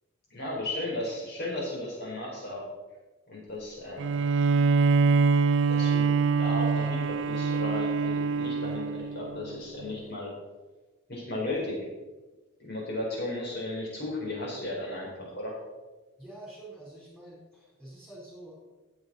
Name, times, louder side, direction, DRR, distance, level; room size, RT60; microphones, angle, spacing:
voice 1, 0.3-2.7 3.3-4.2 5.7-10.3 11.1-11.9 12.6-15.5, left 1 dB, 50° left, -3 dB, 4.5 m, -35 dB
Bowed string instrument, 4.0-9.5, right 4 dB, 55° right, 0.3 m, -24 dB
voice 2, 16.2-18.6, right 1 dB, 5° left, -5 dB, 4.6 m, -47 dB
15.0 x 7.8 x 4.4 m, 1.2 s
head